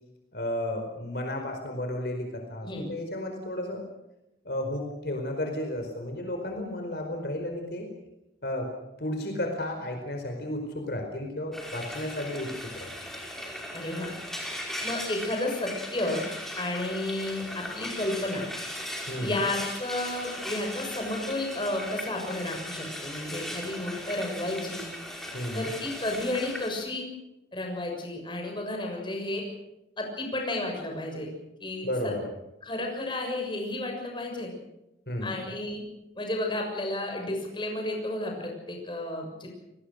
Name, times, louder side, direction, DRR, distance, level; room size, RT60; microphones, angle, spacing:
voice 1, 0.3-3.8 4.4-7.9 8.4-8.7 9.0-12.5 12.8-12.9 19.1-19.4 25.3-25.7 31.8-32.3 35.1-35.4, left 1 dB, 60° left, 3 dB, 4.7 m, -33 dB
Frying (food), 11.5-26.7, left 1 dB, ahead, 5.0 m, -38 dB
voice 2, 13.7-14.1 14.8-16.2 16.6-18.4 19.2-24.8 25.5-27.1 27.5-29.4 30.0-31.3 31.6-32.1 32.6-34.5 35.2-35.8 36.2-39.5, left 1 dB, 25° left, 2 dB, 6.8 m, -32 dB
29.0 x 20.0 x 6.5 m, 0.91 s
head